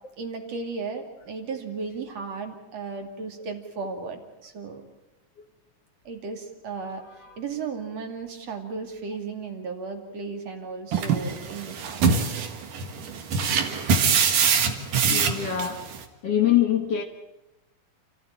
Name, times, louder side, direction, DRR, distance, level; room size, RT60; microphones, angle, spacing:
voice 1, 0.2-4.8 6.0-7.0 7.4-12.4, right 4 dB, 50° right, 3.4 m, -35 dB
sound 1, 10.9-16.0, right 6 dB, 70° right, 3.1 m, -24 dB
voice 2, 15.1-15.9 16.2-17.0, left 11 dB, 55° left, 2.3 m, -24 dB
29.0 x 14.5 x 8.8 m
omnidirectional pair, 4.0 m